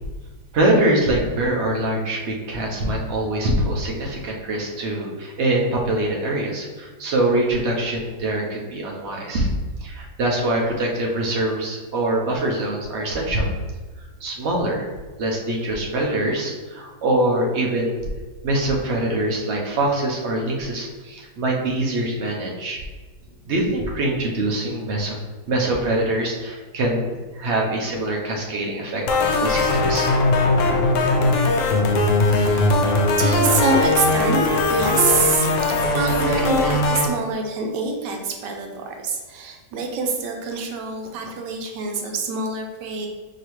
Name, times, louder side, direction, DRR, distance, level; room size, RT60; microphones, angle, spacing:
voice 1, 0.5-9.5 9.8-13.5 14.2-14.9 15.2-18.0 18.4-22.8 23.5-25.2 25.5-30.1, right 1 dB, 55° right, -1 dB, 0.8 m, -23 dB
sound 1, 29.1-37.1, left 2 dB, 80° left, 0.7 m, -19 dB
voice 2, 32.2-32.9 33.2-43.1, right 4 dB, 85° right, 3 dB, 1.3 m, -25 dB
4.9 x 2.8 x 3.0 m, 1.3 s
omnidirectional pair, 1.8 m